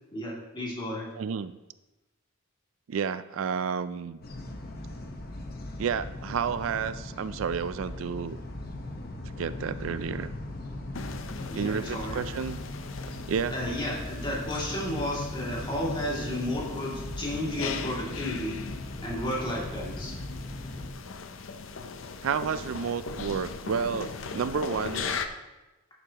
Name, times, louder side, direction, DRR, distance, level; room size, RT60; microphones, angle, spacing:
voice 1, 0.1-1.1 11.5-12.2 13.5-18.6 19.0-20.2, left 1 dB, 25° left, -4 dB, 2.5 m, -32 dB
voice 2, 1.2-1.6 2.9-4.2 5.8-8.4 9.4-10.3 11.5-12.6 13.1-13.5 22.2-25.1, right 6 dB, 75° right, 14 dB, 0.4 m, -31 dB
sound 1, 4.2-20.9, left 1 dB, 50° left, 1.1 m, -39 dB
sound 2, 10.9-25.3, left 5 dB, 70° left, 0.6 m, -39 dB
11.5 x 8.2 x 2.9 m, 1.1 s
head